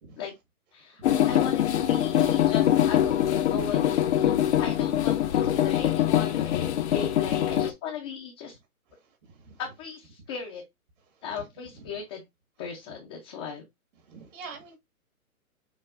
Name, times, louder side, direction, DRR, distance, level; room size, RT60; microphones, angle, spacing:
voice 1, 0.7-8.6 9.6-10.6 11.2-12.2 12.6-13.6, left 5 dB, 15° left, 0.5 m, -38 dB
sound 1, 1.0-7.7, left 11 dB, 50° left, 0.7 m, -23 dB
voice 2, 14.1-14.8, right 5 dB, 55° right, 1.6 m, -43 dB
6.7 x 2.6 x 2.5 m
hypercardioid pair, 140°, 44 cm